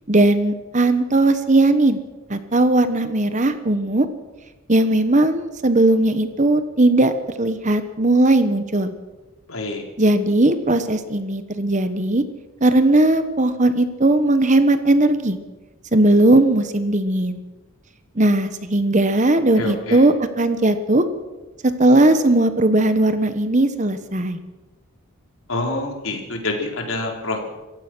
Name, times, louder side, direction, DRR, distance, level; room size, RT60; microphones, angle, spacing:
voice 1, 0.1-2.0 2.3-4.1 4.7-7.1 7.4-8.9 10.0-12.2 12.6-15.4 15.9-17.4 18.2-21.0 21.6-24.4, right 2 dB, 35° right, 10 dB, 1.1 m, -18 dB
voice 2, 9.5-9.8 19.6-20.0 25.5-27.4, left 2 dB, 70° left, 2 dB, 4.1 m, -27 dB
27.0 x 15.5 x 6.2 m, 1.2 s
head